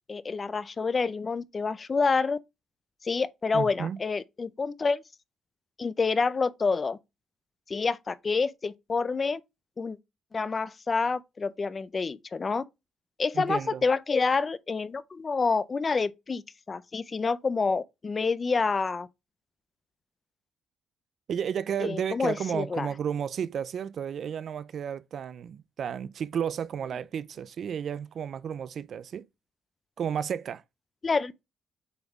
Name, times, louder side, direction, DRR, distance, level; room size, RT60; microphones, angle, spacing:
voice 1, 0.1-2.4 3.0-5.0 5.8-7.0 7.7-9.4 9.8-10.0 10.3-12.6 13.2-19.1 21.8-22.9 31.0-31.3, left 4 dB, 35° left, 0.5 m, -28 dB
voice 2, 3.5-4.0 13.3-13.8 21.3-29.3 30.0-30.6, right 8 dB, 60° right, 0.4 m, -32 dB
7.9 x 3.5 x 3.6 m
cardioid pair, 90°, 0 cm